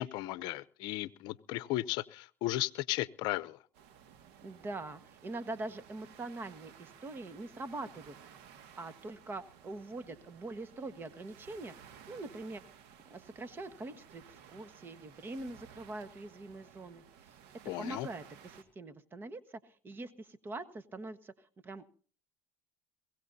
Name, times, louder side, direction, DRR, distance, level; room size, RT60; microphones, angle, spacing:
voice 1, 0.0-3.6 17.7-18.1, left 16 dB, 65° left, 0.7 m, -35 dB
sound 1, 3.7-18.6, right 8 dB, 75° right, 1.9 m, -57 dB
voice 2, 4.4-8.4 8.8-12.6 13.0-17.0 17.8-21.8, right 2 dB, 25° right, 1.4 m, -43 dB
23.0 x 17.0 x 2.7 m
supercardioid pair, 105°, 8 cm